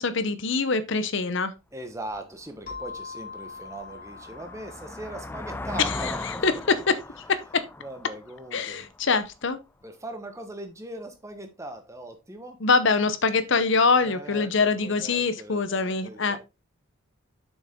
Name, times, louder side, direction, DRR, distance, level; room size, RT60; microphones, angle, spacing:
voice 1, 0.0-1.5 6.0-6.1 6.4-7.0 7.3-7.6 8.5-9.6 12.6-16.4, left 4 dB, 55° left, 0.7 m, -24 dB
voice 2, 1.7-6.6 7.8-8.9 9.8-12.6 14.0-16.4, right 1 dB, 15° right, 1.2 m, -40 dB
sound 1, 2.1-2.2 2.7-9.3, left 2 dB, 10° left, 0.3 m, -39 dB
sound 2, 2.7-7.1, left 5 dB, 40° left, 2.6 m, -44 dB
7.2 x 6.3 x 3.6 m
head